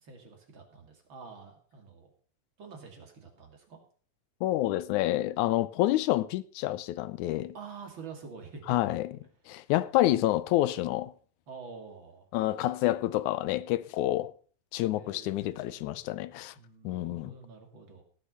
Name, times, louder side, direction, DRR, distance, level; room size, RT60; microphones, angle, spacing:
voice 1, 0.0-2.1 2.6-3.8 7.5-8.6 11.5-12.3 14.9-16.0 16.5-18.0, right 5 dB, 40° right, 3.1 m, -47 dB
voice 2, 4.4-7.5 8.7-9.1 9.5-11.1 12.3-14.3 14.7-16.5 16.8-17.3, left 15 dB, 85° left, 2.1 m, -28 dB
18.0 x 6.5 x 5.5 m
omnidirectional pair, 3.4 m